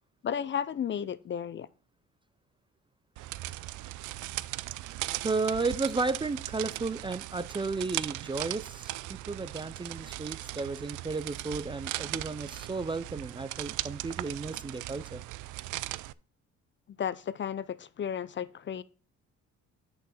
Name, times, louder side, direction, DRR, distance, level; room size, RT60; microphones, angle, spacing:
voice 1, 0.2-1.7 17.0-18.8, left 8 dB, 40° left, 0.5 m, -33 dB
sound 1, 3.2-16.1, right 17 dB, 85° right, 0.5 m, -38 dB
voice 2, 5.2-15.2, right 3 dB, 15° right, 0.4 m, -33 dB
8.2 x 6.5 x 4.1 m
cardioid pair, 90°, 30 cm